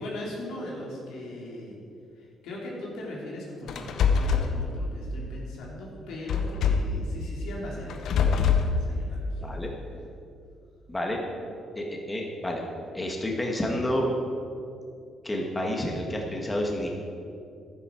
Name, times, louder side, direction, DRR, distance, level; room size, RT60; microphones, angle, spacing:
voice 1, 0.0-1.8 2.1-9.5, left 1 dB, 90° left, -4 dB, 2.9 m, -39 dB
sound 1, 3.7-4.5 6.3-7.0 7.9-8.7, left 6 dB, 70° left, 0.8 m, -23 dB
voice 2, 9.4-9.7 10.9-11.2 11.8-12.6 12.9-14.1 15.2-16.9, left 1 dB, 15° left, 0 dB, 1.7 m, -29 dB
11.5 x 10.0 x 4.5 m, 2.5 s
cardioid pair, 90°, 0 cm